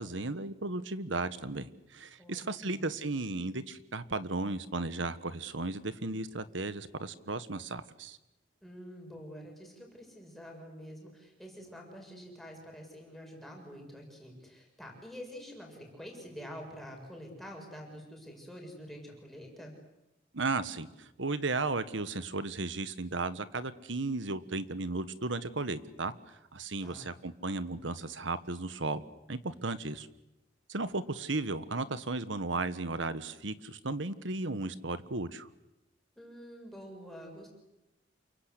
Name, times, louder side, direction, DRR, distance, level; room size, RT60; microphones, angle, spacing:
voice 1, 0.0-8.2 20.3-29.0 29.3-30.1 30.7-35.5, right 3 dB, 75° right, 13 dB, 1.4 m, -35 dB
voice 2, 2.2-2.8 8.6-19.8 26.8-27.1 36.2-37.5, equal, ahead, 0 dB, 7.1 m, -47 dB
28.5 x 24.0 x 8.4 m, 0.93 s
head